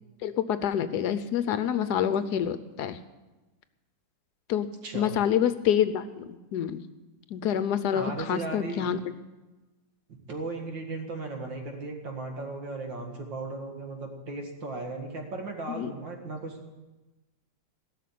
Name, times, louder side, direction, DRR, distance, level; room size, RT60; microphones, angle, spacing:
voice 1, 0.2-3.0 4.5-4.7 4.9-6.8 7.3-9.0 15.8-15.9, left 9 dB, 70° left, 12 dB, 1.1 m, -27 dB
voice 2, 7.9-8.9 10.1-16.8, right 3 dB, 80° right, 3 dB, 2.7 m, -36 dB
17.0 x 6.6 x 9.3 m, 1.1 s
omnidirectional pair, 2.0 m